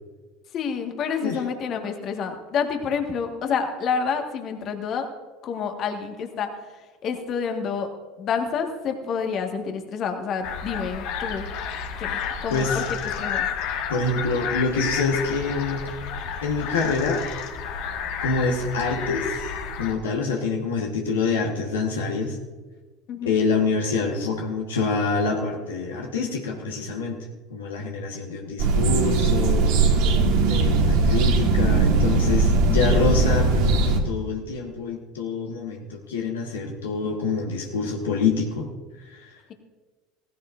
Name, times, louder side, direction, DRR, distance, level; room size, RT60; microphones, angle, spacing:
voice 1, 0.5-5.1 5.4-6.5 7.0-7.9 8.2-11.5 12.0-13.5 23.1-23.3, left 6 dB, 50° left, 4 dB, 1.6 m, -28 dB
sound 1, 10.4-19.9, left 7 dB, 65° left, 1.3 m, -31 dB
voice 2, 12.5-12.8 13.9-15.8 16.4-17.2 18.2-19.5 19.8-22.4 23.2-27.2 27.5-29.7 30.4-38.7 39.1-39.3, left 4 dB, 85° left, 0 dB, 1.4 m, -26 dB
sound 2, 28.6-34.0, right 3 dB, 65° right, 1.6 m, -19 dB
16.5 x 15.0 x 2.6 m, 1.3 s
hypercardioid pair, 75°, 0 cm